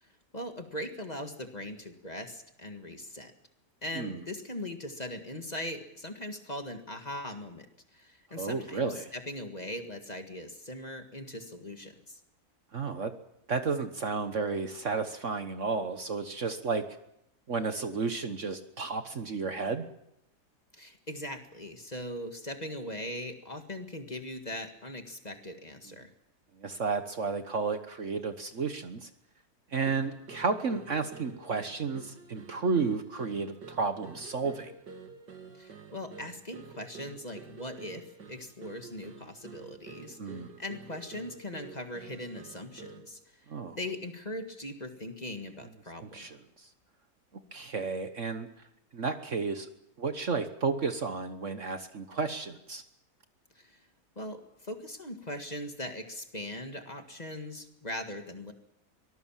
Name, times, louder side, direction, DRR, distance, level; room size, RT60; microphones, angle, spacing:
voice 1, 0.3-3.3 3.8-7.7 7.9-12.2 20.7-26.1 35.5-43.2 43.8-46.3 53.6-53.8 54.2-58.5, left 1 dB, 25° left, 6 dB, 1.9 m, -40 dB
voice 2, 8.4-9.1 12.7-13.1 13.5-16.8 17.5-19.8 26.6-29.1 29.7-34.7 40.1-40.5 43.5-43.8 46.0-46.4 47.5-48.5 48.9-49.7 50.0-52.8, right 4 dB, 50° right, 9 dB, 1.4 m, -32 dB
sound 1, 29.9-43.2, right 5 dB, 85° right, 2.5 m, -49 dB
24.0 x 19.0 x 7.4 m, 0.79 s
omnidirectional pair, 1.8 m